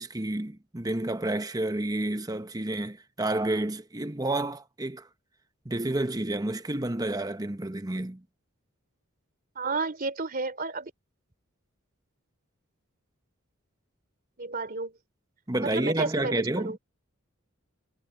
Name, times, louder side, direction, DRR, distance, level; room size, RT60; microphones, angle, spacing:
voice 1, 0.0-5.1 5.6-8.2 15.5-16.8, right 1 dB, 20° right, 1.0 m, -30 dB
voice 2, 9.5-10.9 14.4-14.9 15.6-16.8, right 3 dB, 45° right, 3.2 m, -31 dB
head